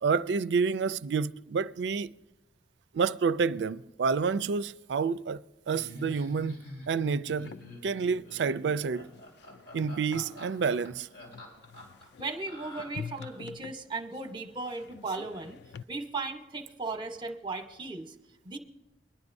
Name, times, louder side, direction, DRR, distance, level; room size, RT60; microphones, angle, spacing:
voice 1, 0.0-2.1 2.9-7.5 7.8-9.1 9.7-11.1, right 5 dB, 75° right, 0.4 m, -29 dB
Laughter, 5.7-13.5, left 1 dB, 90° left, 4.4 m, -46 dB
sound 1, 7.3-15.8, left 7 dB, 65° left, 0.3 m, -47 dB
voice 2, 12.2-15.6 15.9-18.1 18.4-18.6, right 3 dB, 30° right, 0.9 m, -36 dB
22.5 x 10.5 x 2.6 m
head